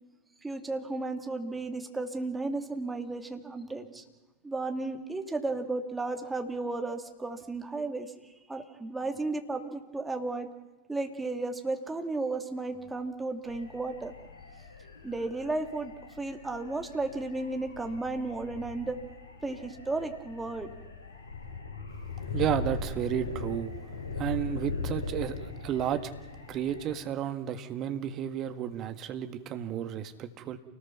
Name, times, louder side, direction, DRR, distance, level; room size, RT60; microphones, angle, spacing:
voice 1, 0.4-4.0 4.4-10.5 10.9-14.1 15.0-19.0 19.4-20.7, right 3 dB, 10° right, 5 dB, 2.4 m, -34 dB
sound 1, 13.4-26.9, left 3 dB, 70° left, 5.6 m, -40 dB
voice 2, 22.3-23.7 24.2-26.1 26.5-30.6, right 10 dB, 35° right, 8 dB, 1.8 m, -32 dB
29.0 x 19.5 x 5.9 m, 1.1 s
figure-of-eight pair, 90°, 0 cm